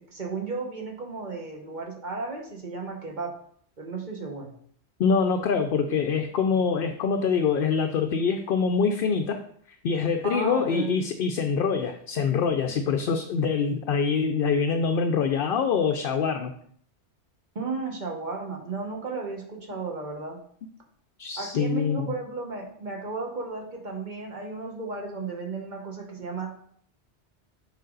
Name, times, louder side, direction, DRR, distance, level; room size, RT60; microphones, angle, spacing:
voice 1, 0.1-3.3 3.8-4.5 10.2-10.9 17.5-20.4 21.4-26.6, right 3 dB, 45° right, 0 dB, 1.4 m, -34 dB
voice 2, 5.0-9.4 9.8-16.5 21.2-22.1, left 5 dB, 60° left, 5 dB, 0.7 m, -25 dB
6.6 x 4.9 x 3.9 m, 0.62 s
omnidirectional pair, 1.2 m